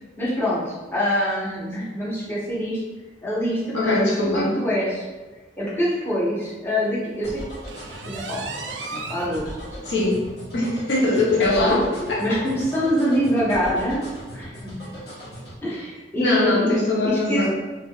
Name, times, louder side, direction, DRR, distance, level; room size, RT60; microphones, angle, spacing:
voice 1, 0.2-2.8 3.2-5.0 5.6-7.4 8.1-8.4 8.9-9.6 11.3-11.9 12.2-14.0 14.3-14.8 15.6-16.7 17.0-17.4, equal, 15° left, -9 dB, 0.9 m, -25 dB
voice 2, 3.7-4.6 9.9-10.2 10.5-12.4 16.2-17.5, left 2 dB, 85° left, -4 dB, 0.7 m, -21 dB
sound 1, 7.2-15.6, equal, 60° left, 0.9 m, -39 dB
sound 2, 7.7-9.4 9.8-9.9 10.4-10.5 10.8-10.9 11.9-12.0, right 4 dB, 80° right, 0.3 m, -35 dB
3.2 x 2.6 x 2.3 m, 1.2 s
head